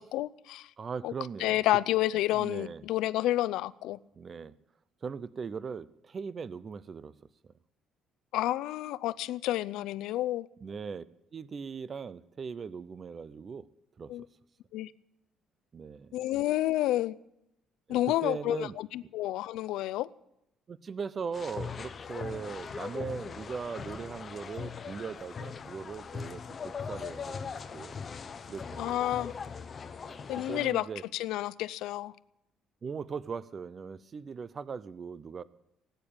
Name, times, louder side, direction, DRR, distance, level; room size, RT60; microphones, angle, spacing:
voice 1, 0.0-0.7 1.0-1.1 1.4-4.0 8.3-10.5 14.1-14.2 14.7-14.9 16.1-17.2 17.9-20.1 28.8-29.3 30.3-30.9 31.1-32.1, left 15 dB, 80° left, 0.5 m, -30 dB
voice 2, 0.8-1.6 2.3-2.8 4.1-4.5 5.0-7.1 7.4-7.5 10.6-11.0 11.3-13.7 14.0-14.1 15.7-16.2 17.9-18.7 20.7-27.4 27.7-28.0 28.5-29.0 30.1-31.0 32.8-35.4, right 5 dB, 30° right, 0.5 m, -39 dB
sound 1, 21.3-30.7, left 6 dB, 30° left, 0.8 m, -40 dB
18.5 x 9.1 x 8.7 m
cardioid pair, 150°, 0 cm